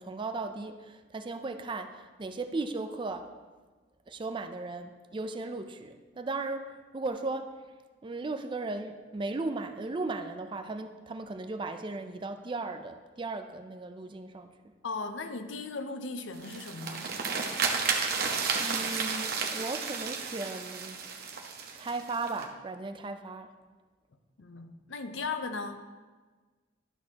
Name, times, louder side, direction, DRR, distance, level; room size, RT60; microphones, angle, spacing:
voice 1, 0.0-3.3 4.1-7.5 8.0-14.5 18.6-21.0 21.7-23.5, right 3 dB, 25° right, 8 dB, 0.4 m, -36 dB
voice 2, 14.8-17.1 24.4-25.8, left 4 dB, 70° left, 8 dB, 0.6 m, -37 dB
sound 1, 16.3-22.4, right 5 dB, 50° right, 0.9 m, -32 dB
11.5 x 6.3 x 2.8 m, 1.3 s
head